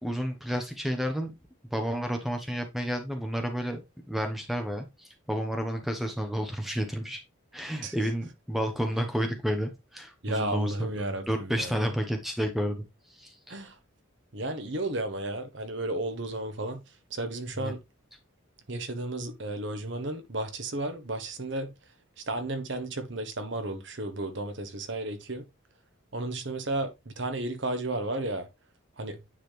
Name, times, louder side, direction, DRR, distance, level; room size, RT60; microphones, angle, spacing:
voice 1, 0.0-1.3 1.7-3.8 4.1-7.2 7.5-12.8 13.1-13.6 17.6-17.7, equal, ahead, 1.0 m, -31 dB
voice 2, 10.2-11.8 13.5-13.7 14.3-16.8 17.1-17.8 18.7-21.7 22.2-25.5 26.1-28.5 29.0-29.2, right 2 dB, 60° right, 1.2 m, -33 dB
9.4 x 4.1 x 3.3 m
head